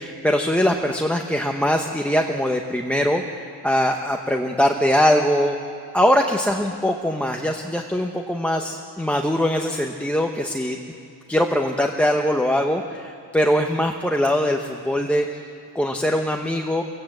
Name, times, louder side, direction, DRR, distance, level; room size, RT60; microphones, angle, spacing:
voice 1, 0.0-3.2 3.6-5.6 5.9-10.8 11.3-15.3 15.7-16.8, equal, 5° left, 3 dB, 0.8 m, -22 dB
24.0 x 17.0 x 7.9 m, 2.6 s
cardioid pair, 175°, 41 cm